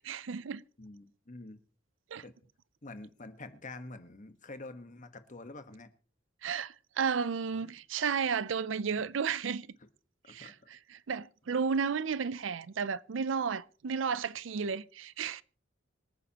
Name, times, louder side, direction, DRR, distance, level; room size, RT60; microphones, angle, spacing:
voice 1, 0.0-0.6 2.1-2.2 6.4-9.7 10.3-10.5 10.9-15.4, right 6 dB, 75° right, 0.5 m, -33 dB
voice 2, 0.8-1.6 2.2-2.3 2.8-5.9 7.6-7.7 10.4-10.7, left 2 dB, 40° left, 1.3 m, -47 dB
26.0 x 9.2 x 2.9 m
head